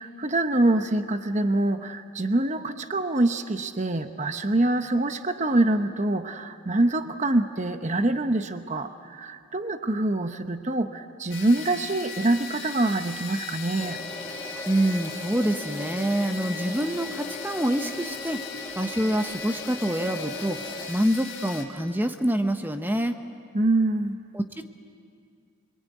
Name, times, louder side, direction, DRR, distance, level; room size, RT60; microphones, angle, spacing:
voice 1, 0.0-14.0 23.5-24.2, right 2 dB, 35° right, 8 dB, 0.9 m, -25 dB
sound 1, 11.3-21.6, left 4 dB, 55° left, 3.6 m, -38 dB
sound 2, 13.8-20.9, left 1 dB, 20° left, 1.8 m, -40 dB
voice 2, 14.7-18.4 18.8-20.6 20.9-23.2 24.3-24.7, right 1 dB, 10° right, 7 dB, 1.0 m, -26 dB
28.5 x 22.5 x 9.4 m, 2.3 s
head